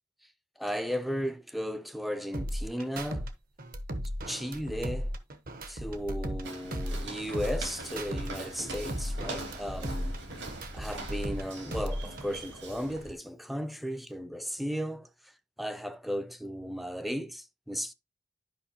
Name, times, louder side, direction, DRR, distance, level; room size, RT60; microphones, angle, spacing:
voice 1, 0.6-3.3 4.3-5.1 5.7-10.2 10.7-15.3 15.6-17.9, equal, ahead, 0.5 m, -35 dB
sound 1, 2.3-3.3 3.6-6.5 6.7-8.3 8.6-11.4 11.7-12.3, equal, 50° right, 1.1 m, -35 dB
Walk footsteps, 6.4-13.1, right 2 dB, 70° right, 2.6 m, -42 dB
11.0 x 5.4 x 2.8 m
head